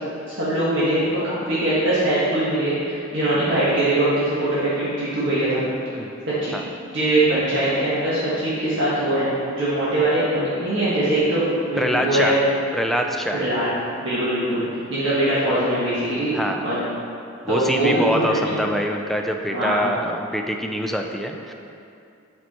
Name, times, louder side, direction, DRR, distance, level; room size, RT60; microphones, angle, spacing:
voice 1, 0.3-5.6 6.4-6.6 6.9-12.4 13.3-13.7 14.0-14.6 14.9-16.3 16.6-16.8 17.5-18.2 19.5-19.8, right 1 dB, 65° right, -10 dB, 1.5 m, -22 dB
voice 2, 11.8-12.3 12.7-13.4 16.3-16.6 17.4-21.5, equal, ahead, 2 dB, 0.4 m, -24 dB
7.8 x 4.5 x 4.3 m, 2.5 s
head